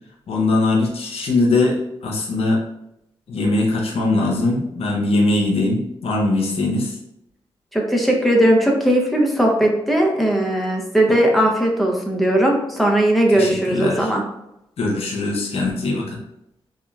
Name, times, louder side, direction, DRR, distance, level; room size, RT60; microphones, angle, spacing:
voice 1, 0.3-2.6 3.3-7.0 13.3-14.1 14.8-16.2, left 2 dB, 70° left, -2 dB, 0.6 m, -21 dB
voice 2, 7.7-14.2, right 1 dB, ahead, -1 dB, 0.7 m, -18 dB
2.8 x 2.2 x 2.3 m, 0.83 s
supercardioid pair, 50°, 10 cm